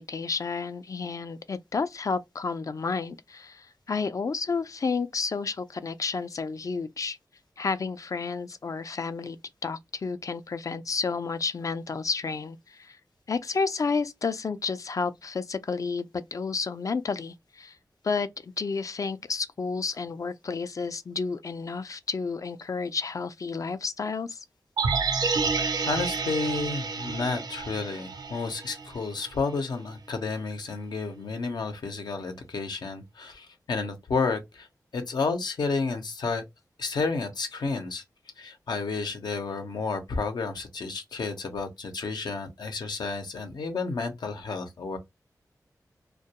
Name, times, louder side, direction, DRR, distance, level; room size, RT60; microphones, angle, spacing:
voice 1, 0.0-7.2 7.6-9.4 9.6-13.0 13.3-17.8 18.0-24.4, left 4 dB, 50° left, 0.4 m, -31 dB
sound 1, 24.8-29.0 29.3-29.4, right 4 dB, 75° right, 0.5 m, -29 dB
voice 2, 25.9-34.7 34.9-36.4 36.8-38.0 38.4-45.0, left 4 dB, 85° left, 0.6 m, -31 dB
2.2 x 2.2 x 2.8 m
cardioid pair, 55°, 7 cm